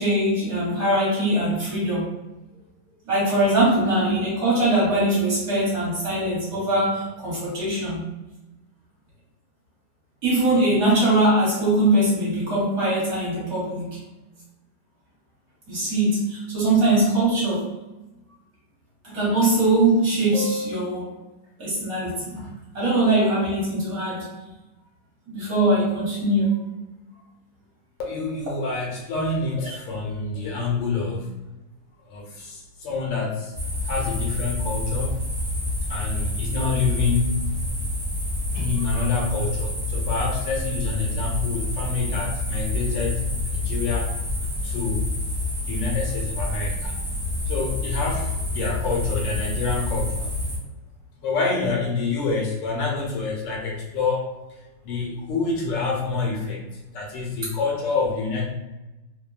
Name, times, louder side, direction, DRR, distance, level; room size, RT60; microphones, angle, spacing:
voice 1, 0.0-2.1 3.0-8.1 10.2-14.0 15.7-17.7 19.0-21.1 21.6-22.5 22.7-24.3 25.3-26.5 38.9-39.0, right 1 dB, 50° right, -8 dB, 1.4 m, -22 dB
voice 2, 28.0-31.3 32.1-33.5 33.8-35.1 35.9-37.5 38.5-44.1 44.6-45.1 45.7-46.9 47.5-50.1 51.2-54.3 54.8-56.6 56.9-58.5, left 4 dB, 75° left, -1 dB, 1.3 m, -27 dB
sound 1, 33.5-50.6, left 1 dB, 20° right, 0.9 m, -28 dB
3.3 x 2.1 x 2.4 m, 1.0 s
omnidirectional pair, 2.1 m